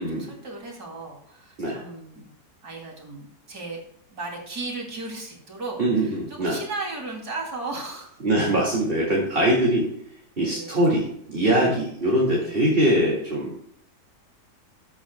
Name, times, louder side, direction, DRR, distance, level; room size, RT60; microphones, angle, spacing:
voice 1, 0.0-2.3 2.6-3.8 4.1-8.2 10.4-10.7 11.6-11.8 12.4-12.6, right 3 dB, 60° right, 0 dB, 3.2 m, -36 dB
voice 2, 5.8-6.6 8.2-9.9 10.4-13.5, right 1 dB, 30° right, -3 dB, 2.3 m, -22 dB
14.0 x 8.6 x 2.2 m, 0.69 s
omnidirectional pair, 1.8 m